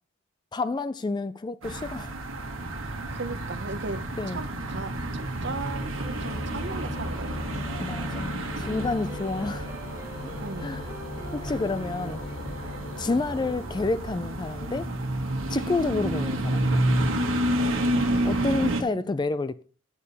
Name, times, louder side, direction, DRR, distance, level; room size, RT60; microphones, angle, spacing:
voice 1, 0.5-2.1 4.2-4.4 7.8-9.7 10.6-10.8 11.3-12.2 13.0-14.9 15.5-16.7 18.2-19.6, left 3 dB, 20° left, 0.3 m, -29 dB
sound 1, 1.6-18.8, right 1 dB, 80° right, 1.4 m, -30 dB
voice 2, 3.1-7.5 10.4-10.7 13.0-13.2 18.1-19.1, right 3 dB, 55° right, 0.8 m, -37 dB
sound 2, 3.8-14.5, left 2 dB, 70° left, 1.1 m, -40 dB
sound 3, 8.6-13.3, right 3 dB, 15° right, 1.0 m, -46 dB
9.7 x 4.2 x 6.6 m
head